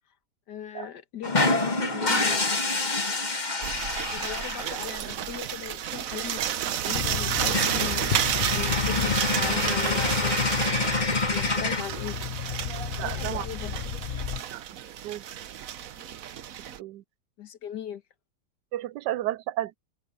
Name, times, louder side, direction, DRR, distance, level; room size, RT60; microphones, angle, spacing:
voice 1, 0.5-2.5 4.1-6.4 6.7-10.6 11.3-12.2 13.0-13.8 17.4-18.0, left 10 dB, 75° left, 1.8 m, -38 dB
sound 1, 1.2-4.9 6.4-6.5 6.8-6.9 7.2-7.3 7.5-11.8, left 3 dB, 25° left, 1.6 m, -27 dB
sound 2, 3.6-16.8, right 10 dB, 60° right, 1.1 m, -31 dB
sound 3, 6.9-14.4, left 9 dB, 50° left, 0.8 m, -33 dB
voice 2, 13.0-13.4 14.5-14.6 15.0-15.4 16.8-17.0 18.7-19.8, right 14 dB, 85° right, 1.2 m, -32 dB
omnidirectional pair, 1.8 m